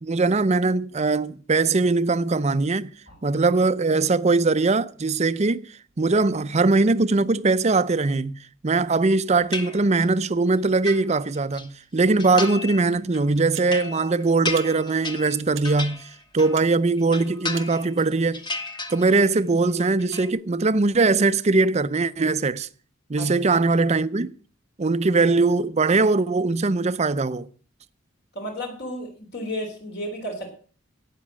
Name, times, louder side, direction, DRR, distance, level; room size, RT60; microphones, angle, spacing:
voice 1, 0.0-2.9 3.2-5.7 6.0-8.4 8.6-16.0 16.3-18.4 18.9-22.7 23.1-24.3 24.8-27.5, right 3 dB, 35° right, 0.5 m, -21 dB
sound 1, 9.5-10.2 10.6-11.7 12.2-12.8 13.1-16.7 17.0-18.0 18.3-19.4 19.7-20.3, left 3 dB, 25° left, 1.3 m, -34 dB
sound 2, 13.5-13.8 14.5-14.7 15.5-15.7 16.5-16.7 17.5-17.7, right 12 dB, 90° right, 1.1 m, -39 dB
voice 2, 28.3-30.5, equal, 55° left, 3.7 m, -33 dB
12.5 x 9.0 x 7.4 m
head